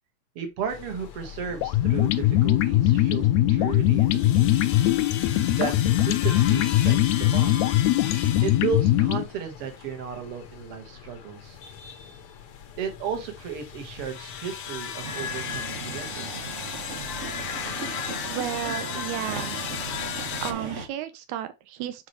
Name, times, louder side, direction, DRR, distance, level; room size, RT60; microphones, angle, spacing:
voice 1, 0.4-4.7 5.6-7.6 8.4-11.6 12.8-16.3, right 6 dB, 55° right, 2.4 m, -34 dB
sound 1, 0.7-20.5, left 8 dB, 65° left, 1.6 m, -37 dB
sound 2, 1.6-9.2, left 14 dB, 80° left, 1.9 m, -21 dB
sound 3, 15.0-20.9, right 4 dB, 70° right, 0.6 m, -37 dB
voice 2, 18.3-19.7 20.4-22.1, right 12 dB, 85° right, 2.1 m, -33 dB
7.5 x 4.7 x 3.2 m
omnidirectional pair, 3.3 m